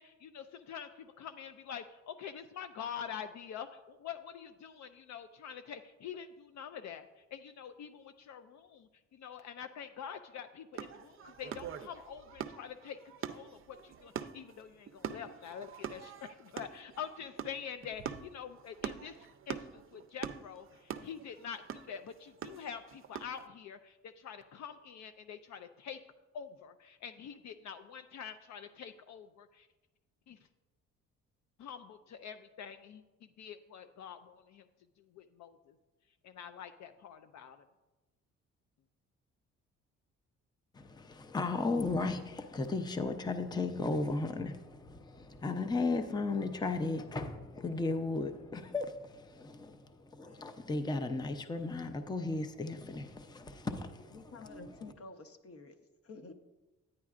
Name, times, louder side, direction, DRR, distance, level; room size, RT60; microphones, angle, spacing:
voice 1, 0.0-13.0 13.3-26.0 26.3-29.7 30.3-30.4 31.6-33.0 33.4-34.6 35.1-35.7 36.2-37.6, left 8 dB, 65° left, 8 dB, 0.5 m, -46 dB
sound 1, 10.7-23.4, right 8 dB, 45° right, 0.5 m, -44 dB
voice 2, 40.7-54.6, left 3 dB, 15° left, 8 dB, 0.6 m, -35 dB
voice 3, 54.1-55.8 56.0-56.3, left 3 dB, 50° left, 8 dB, 0.9 m, -50 dB
10.0 x 9.6 x 2.4 m, 1.1 s
cardioid pair, 90°, 30 cm